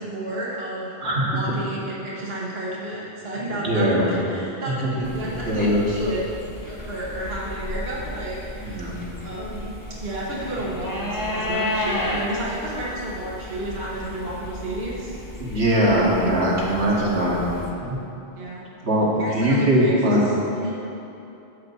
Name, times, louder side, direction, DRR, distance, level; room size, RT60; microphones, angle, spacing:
voice 1, 0.0-0.9 1.2-6.2 6.6-8.9 9.2-15.1 15.8-16.1 16.9-17.2 18.3-18.6 19.2-20.7, right 1 dB, 65° right, -6 dB, 1.6 m, -31 dB
voice 2, 1.0-1.5 3.5-4.0 4.7-4.9 5.5-5.8 8.6-8.9 15.4-17.4 17.8-18.0 18.8-20.2, right 1 dB, 85° right, -4 dB, 1.9 m, -21 dB
sound 1, 5.0-17.7, left 1 dB, 20° left, 0.9 m, -33 dB
12.5 x 4.3 x 7.1 m, 2.9 s
omnidirectional pair, 1.1 m